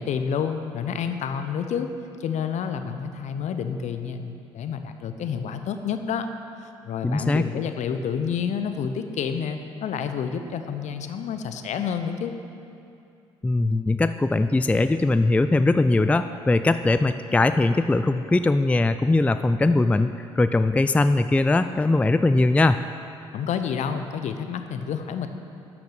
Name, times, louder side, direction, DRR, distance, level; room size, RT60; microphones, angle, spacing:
voice 1, 0.0-1.9 2.2-6.3 6.6-12.3 23.3-25.3, left 7 dB, 60° left, 8 dB, 0.8 m, -29 dB
voice 2, 7.0-7.5 13.4-22.8, left 2 dB, 10° left, 11 dB, 0.3 m, -21 dB
11.5 x 6.0 x 6.7 m, 2.6 s
hypercardioid pair, 50°, 14 cm